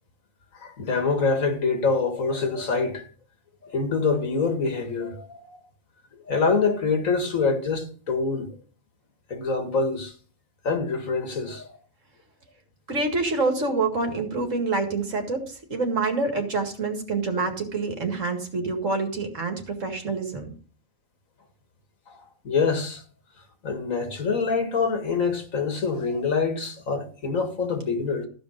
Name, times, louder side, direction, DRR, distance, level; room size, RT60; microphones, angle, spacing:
voice 1, 0.5-3.1 3.6-5.6 6.3-8.5 9.3-10.1 10.6-11.7 22.4-23.0 23.6-28.3, left 4 dB, 90° left, 2.2 m, -25 dB
voice 2, 12.9-20.5, right 3 dB, 70° right, 2.4 m, -27 dB
14.0 x 5.2 x 6.5 m
omnidirectional pair, 1.4 m